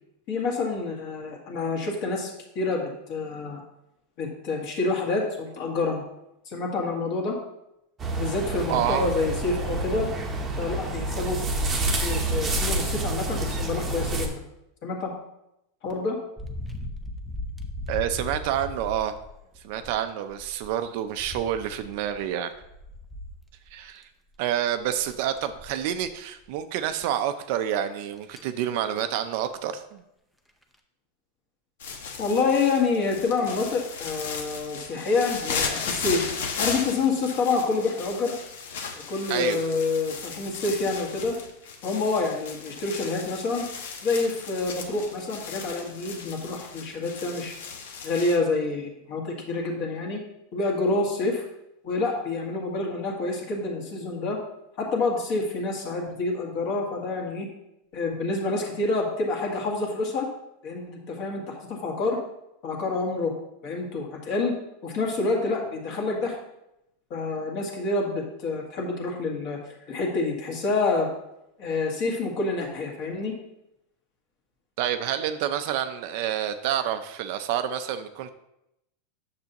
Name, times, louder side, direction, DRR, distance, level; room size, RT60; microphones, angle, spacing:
voice 1, 0.3-3.6 4.2-6.0 6.5-7.4 8.1-10.1 10.6-11.4 12.0-14.4 14.8-15.1 15.8-16.2 32.2-36.3 36.6-38.3 39.1-41.3 41.8-43.7 44.0-47.5 48.0-50.2 50.5-51.4 51.8-54.4 54.8-57.5 57.9-60.3 60.6-62.2 62.6-63.3 63.6-64.5 64.8-66.4 67.1-71.1 71.6-73.3, left 3 dB, 40° left, 0 dB, 1.8 m, -27 dB
sound 1, 8.0-14.3, right 2 dB, 15° right, 0.9 m, -28 dB
voice 2, 8.7-9.1 17.9-19.2 19.6-22.5 23.7-24.1 24.4-30.0 39.3-39.6 74.8-78.3, right 10 dB, 50° right, 9 dB, 0.5 m, -28 dB
sound 2, 16.4-19.9 20.3-24.0 24.3-24.4 24.8-26.1 26.4-26.6 27.0-27.1 28.0-28.5 29.5-29.7 30.5-30.7, left 1 dB, 5° left, 0.6 m, -38 dB
sound 3, 31.8-48.4, left 5 dB, 85° left, 1.2 m, -36 dB
9.4 x 6.8 x 2.9 m, 0.84 s
supercardioid pair, 165°, 0 cm